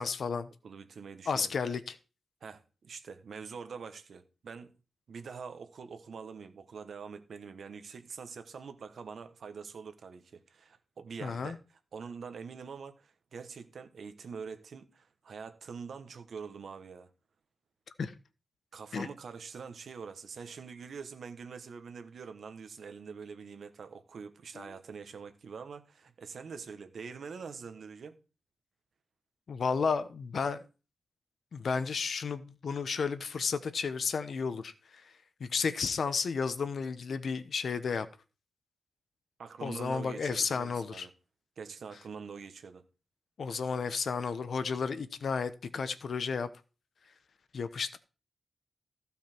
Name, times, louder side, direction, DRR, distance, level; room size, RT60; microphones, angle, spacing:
voice 1, 0.0-0.5 1.3-1.9 11.2-11.6 18.0-18.1 18.9-19.1 24.5-24.7 29.5-30.6 31.5-35.1 35.4-38.1 39.6-41.1 43.4-46.5 47.5-48.0, left 5 dB, 55° left, 0.8 m, -32 dB
voice 2, 0.6-1.6 2.4-4.7 5.1-11.6 11.9-17.1 18.7-28.2 39.4-41.1 41.6-42.8, right 5 dB, 60° right, 1.2 m, -45 dB
14.5 x 5.7 x 4.5 m
wide cardioid pair, 140°, 0 cm